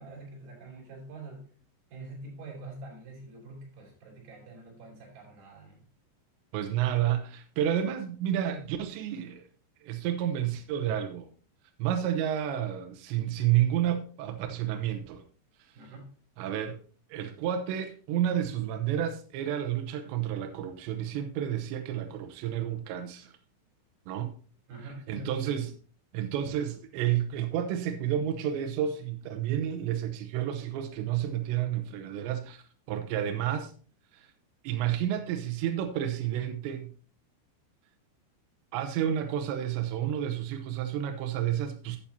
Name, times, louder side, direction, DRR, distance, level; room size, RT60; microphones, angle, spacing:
voice 1, 0.0-1.5 1.9-5.8 15.7-16.2 24.7-25.5, right 2 dB, 55° right, 5.3 m, -45 dB
voice 2, 6.5-9.5 9.8-11.3 11.8-15.2 16.4-16.8 17.1-23.3 24.1-24.3 25.1-25.7 26.1-32.6 32.9-33.7 34.1-34.3 34.6-36.9 38.7-42.0, right 10 dB, 80° right, 2.6 m, -30 dB
11.5 x 8.6 x 2.8 m
omnidirectional pair, 5.9 m